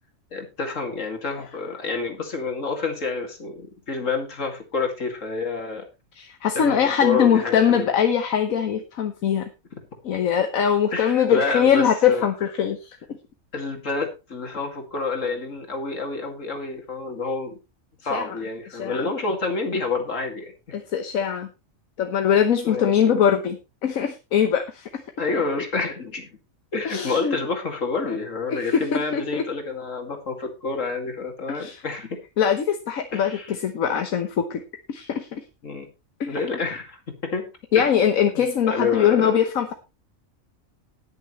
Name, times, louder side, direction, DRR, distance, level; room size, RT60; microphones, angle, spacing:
voice 1, 0.3-5.8 6.5-7.9 10.9-12.2 13.5-17.6 18.0-20.5 22.6-22.9 25.2-26.4 26.7-32.2 33.1-33.5 35.6-35.9 36.3-37.5 37.7-37.9 38.4-39.4, left 4 dB, 70° left, 3 dB, 2.7 m, -28 dB
voice 2, 6.1-9.5 10.0-13.2 18.1-18.4 18.7-19.1 20.7-21.5 22.0-25.0 26.8-27.4 28.1-28.2 28.5-29.4 31.5-31.8 32.4-34.6 34.9-35.4 36.2-36.4 37.7-39.7, left 8 dB, 85° left, 6 dB, 1.4 m, -22 dB
19.5 x 6.8 x 3.1 m, 0.27 s
omnidirectional pair, 1.4 m